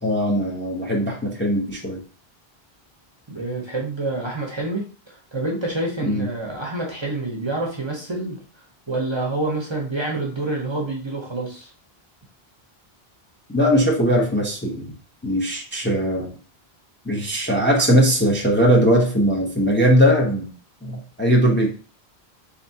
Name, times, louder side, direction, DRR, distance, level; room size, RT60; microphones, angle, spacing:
voice 1, 0.0-2.0 6.0-6.3 13.5-14.9 15.2-16.3 17.0-20.5 20.8-21.7, equal, 15° left, -2 dB, 0.6 m, -19 dB
voice 2, 3.3-8.4 8.9-11.7, right 2 dB, 30° right, -1 dB, 0.8 m, -27 dB
3.5 x 3.5 x 2.7 m, 0.39 s
omnidirectional pair, 1.0 m